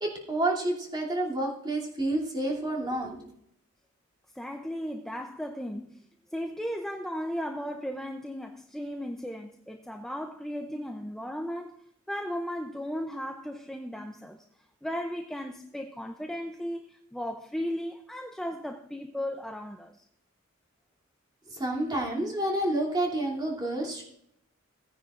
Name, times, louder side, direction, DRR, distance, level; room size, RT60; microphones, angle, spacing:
voice 1, 0.0-3.3 21.5-24.0, right 1 dB, 20° right, 2.8 m, -29 dB
voice 2, 4.3-6.0 6.3-11.8 12.1-14.4 14.8-19.9, equal, ahead, 0.5 m, -36 dB
17.5 x 9.5 x 2.5 m
head